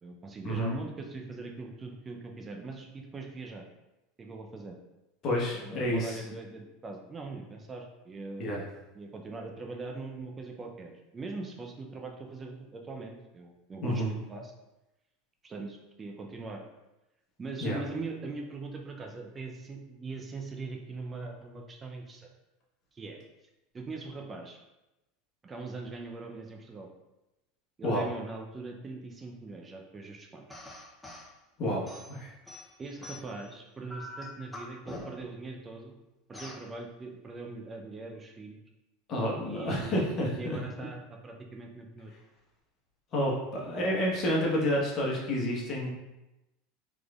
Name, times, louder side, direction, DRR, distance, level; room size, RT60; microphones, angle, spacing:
voice 1, 0.0-3.6 4.2-4.8 5.5-8.7 8.9-14.5 15.4-16.6 17.4-22.3 22.9-23.2 23.7-24.6 25.4-26.9 27.8-30.4 32.8-35.9 36.3-38.6 39.4-40.0 40.3-42.1, right 3 dB, 25° right, 1 dB, 0.5 m, -41 dB
voice 2, 5.2-6.2 8.4-8.6 13.8-14.1 17.6-17.8 27.8-28.1 31.6-32.3 39.1-40.6 43.1-45.9, equal, 45° left, -3 dB, 1.1 m, -29 dB
sound 1, 30.5-31.3 31.9-33.5 33.9-35.4 36.3-36.7, left 1 dB, 10° left, 0.8 m, -44 dB
3.6 x 3.2 x 2.4 m, 0.97 s
hypercardioid pair, 85°, 0 cm